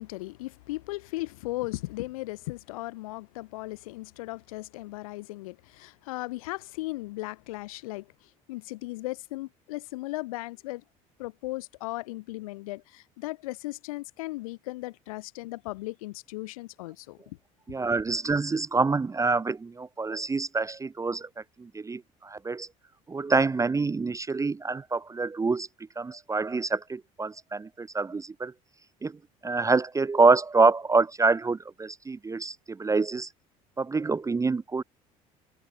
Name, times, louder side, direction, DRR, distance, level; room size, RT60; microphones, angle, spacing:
voice 1, 0.0-10.8 11.2-17.4 17.7-17.8, left 20 dB, 90° left, 0.5 m, -37 dB
voice 2, 17.7-21.3 21.6-22.7 23.1-25.7 26.0-28.5 29.0-33.3 33.8-34.8, right 3 dB, 20° right, 0.6 m, -26 dB
supercardioid pair, 80°, 18 cm